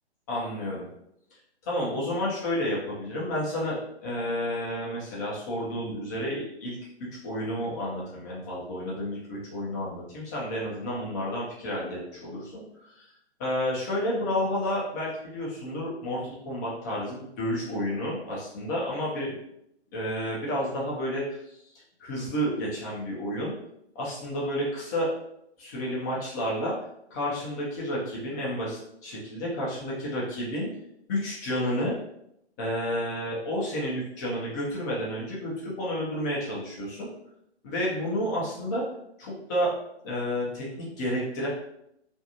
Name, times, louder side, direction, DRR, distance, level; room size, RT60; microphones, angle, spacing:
voice 1, 0.3-0.9 1.7-12.6 13.0-13.1 13.4-19.4 19.9-21.4 22.0-23.5 24.0-25.1 25.6-26.8 27.1-30.7 31.1-32.0 32.6-37.1 37.6-38.8 39.2-39.7 40.0-40.7 41.0-41.5, equal, 15° left, -6 dB, 0.5 m, -30 dB
2.5 x 2.3 x 2.8 m, 0.78 s
figure-of-eight pair, 135°, 34 cm